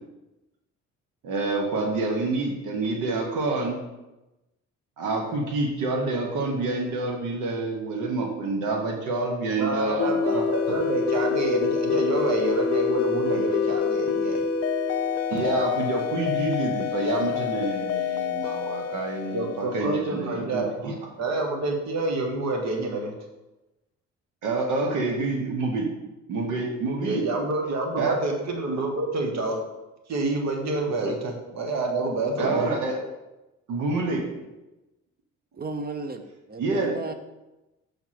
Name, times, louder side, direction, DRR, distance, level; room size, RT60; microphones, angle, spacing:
voice 1, 1.2-3.8 5.0-10.4 15.3-20.9 24.4-25.9 26.3-27.2 28.0-28.1 28.7-28.8 31.0-31.1 32.4-33.0 33.7-34.3 36.6-36.9, right 3 dB, 90° right, 2 dB, 1.1 m, -27 dB
voice 2, 9.5-14.4 19.3-20.7 21.2-23.1 27.0-29.6 30.1-32.7, right 2 dB, 60° right, 2 dB, 1.4 m, -28 dB
sound 1, 10.0-20.3, left 7 dB, 50° left, 0.4 m, -27 dB
voice 3, 35.5-37.1, right 3 dB, 30° right, 8 dB, 0.7 m, -34 dB
6.0 x 3.5 x 5.8 m, 1.0 s
cardioid pair, 90°, 30 cm